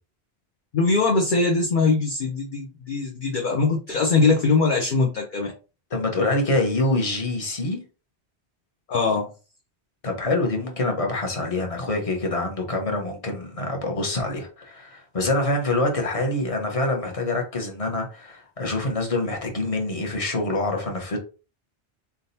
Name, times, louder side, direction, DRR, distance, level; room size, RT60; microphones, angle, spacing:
voice 1, 0.7-5.5 8.9-9.3, left 3 dB, 55° left, 0.8 m, -21 dB
voice 2, 5.9-7.8 10.0-21.2, left 2 dB, 35° left, 1.1 m, -25 dB
4.1 x 3.7 x 2.7 m
omnidirectional pair, 1.1 m